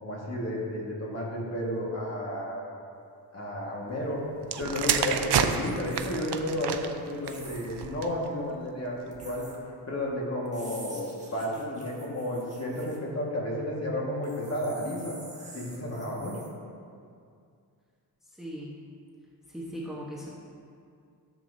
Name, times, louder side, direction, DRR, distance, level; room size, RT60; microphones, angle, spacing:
voice 1, 0.0-2.6 3.3-4.2 4.6-9.4 9.9-15.2 15.5-16.4, left 1 dB, 35° left, -4 dB, 1.8 m, -32 dB
sound 1, 4.4-8.3 9.1-9.3, right 8 dB, 70° right, 0.6 m, -30 dB
sound 2, 5.8-6.1 7.2-7.8 9.1-9.6 10.5-13.0 14.2-16.5, right 2 dB, 15° right, 1.4 m, -48 dB
voice 2, 18.3-18.7 19.5-20.3, equal, ahead, -5 dB, 1.2 m, -38 dB
13.5 x 7.2 x 2.8 m, 2.3 s
wide cardioid pair, 125°, 41 cm